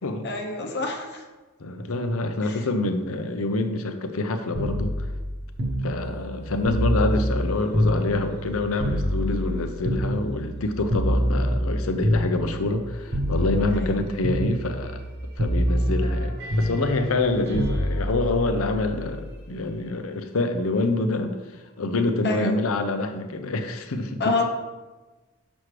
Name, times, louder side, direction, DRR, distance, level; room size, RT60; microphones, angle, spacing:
voice 1, 0.2-1.2 2.4-2.6 13.7-14.1 22.2-22.5 24.2-24.4, left 2 dB, 50° left, 2 dB, 0.9 m, -27 dB
voice 2, 1.6-5.1 5.8-15.0 15.4-24.3, left 2 dB, 70° left, 7 dB, 0.7 m, -26 dB
sound 1, 4.5-8.5 8.8-12.8 13.1-14.0 14.2-15.1 15.4-19.4 20.6-20.8, equal, 50° right, 1.0 m, -26 dB
6.3 x 6.0 x 3.3 m, 1.2 s
head